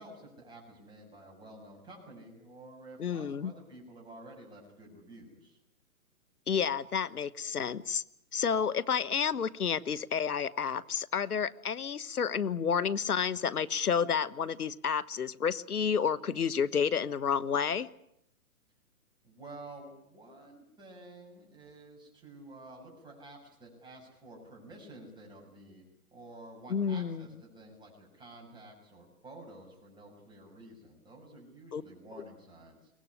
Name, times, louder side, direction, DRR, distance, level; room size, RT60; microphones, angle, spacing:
voice 1, 0.0-5.6 19.2-25.8 26.1-32.9, right 1 dB, 10° right, -1 dB, 6.9 m, -51 dB
voice 2, 3.0-3.5 6.5-8.0 8.3-17.9 26.7-27.3 31.7-31.8, left 7 dB, 85° left, 18 dB, 1.2 m, -30 dB
23.0 x 18.5 x 9.9 m, 0.78 s
hypercardioid pair, 140°, 44 cm